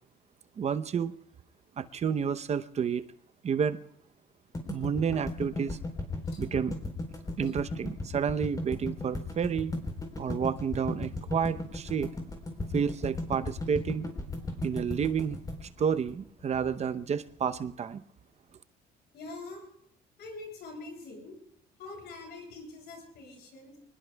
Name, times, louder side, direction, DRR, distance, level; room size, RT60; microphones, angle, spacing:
voice 1, 0.6-1.1 1.8-3.0 3.4-3.8 4.7-5.8 6.4-6.8 7.4-9.7 10.2-12.1 12.7-14.0 14.6-18.0, right 7 dB, 40° right, 12 dB, 0.8 m, -30 dB
sound 1, 4.5-16.7, left 2 dB, 20° left, 4.1 m, -36 dB
voice 2, 19.1-19.7 20.2-21.3 21.8-23.8, left 3 dB, 75° left, 1 dB, 8.0 m, -44 dB
25.0 x 20.0 x 2.3 m, 0.69 s
cardioid pair, 110°, 17 cm